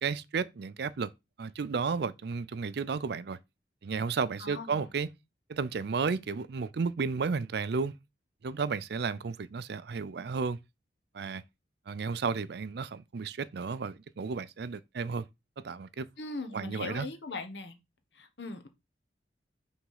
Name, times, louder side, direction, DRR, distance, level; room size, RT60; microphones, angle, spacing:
voice 1, 0.0-1.1 1.4-3.4 3.8-5.1 5.5-8.0 8.4-10.6 11.1-11.4 11.9-15.3 15.6-16.1 16.5-17.1, right 5 dB, 60° right, 0.4 m, -33 dB
voice 2, 4.4-4.9 16.2-17.7 18.1-18.7, left 3 dB, 70° left, 1.2 m, -40 dB
6.0 x 3.5 x 5.6 m
head